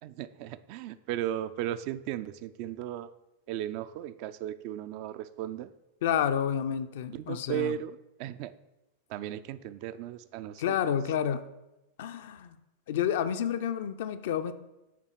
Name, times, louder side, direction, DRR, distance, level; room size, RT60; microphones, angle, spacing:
voice 1, 0.0-3.1 3.5-5.7 7.1-8.5 9.1-10.8, right 12 dB, 45° right, 13 dB, 0.3 m, -36 dB
voice 2, 6.0-7.7 10.6-11.4 12.0-12.6 12.9-14.5, left 9 dB, 55° left, 10 dB, 0.4 m, -29 dB
5.9 x 4.1 x 6.2 m, 0.95 s
figure-of-eight pair, 90°, 0 cm